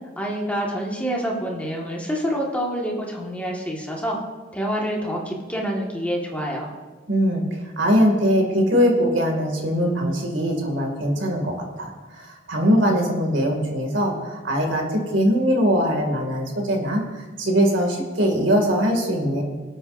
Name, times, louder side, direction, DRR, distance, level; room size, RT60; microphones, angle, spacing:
voice 1, 0.2-4.2 4.5-6.7, equal, 10° left, -2 dB, 1.7 m, -27 dB
voice 2, 7.1-19.4, equal, 75° right, 2 dB, 2.4 m, -21 dB
25.0 x 8.6 x 2.7 m, 1.3 s
head